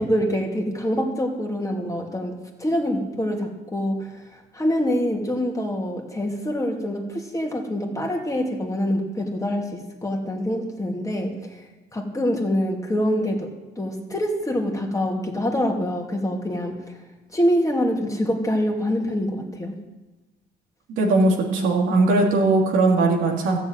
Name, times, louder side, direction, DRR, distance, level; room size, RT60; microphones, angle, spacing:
voice 1, 0.0-11.3 11.9-13.5 13.8-16.9 17.3-19.8, equal, 15° left, 1 dB, 2.6 m, -25 dB
voice 2, 21.0-23.6, right 2 dB, 90° right, 0 dB, 2.8 m, -19 dB
13.5 x 7.2 x 9.0 m, 1.1 s
cardioid pair, 90°, 20 cm